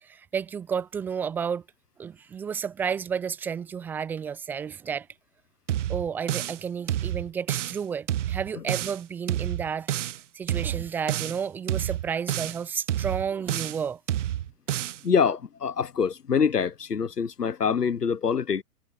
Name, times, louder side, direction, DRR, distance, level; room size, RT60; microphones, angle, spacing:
voice 1, 0.0-1.6 2.0-5.1 5.9-9.9 10.3-14.0, right 7 dB, 5° right, 0.5 m, -31 dB
sound 1, 5.7-6.6 6.9-7.8 8.1-9.0 9.3-10.2 10.5-11.4 11.7-12.6 12.9-13.8 14.1-15.0, right 12 dB, 50° right, 0.9 m, -29 dB
voice 2, 15.0-18.6, left 6 dB, 80° left, 1.3 m, -25 dB
figure-of-eight pair, 115°, 47 cm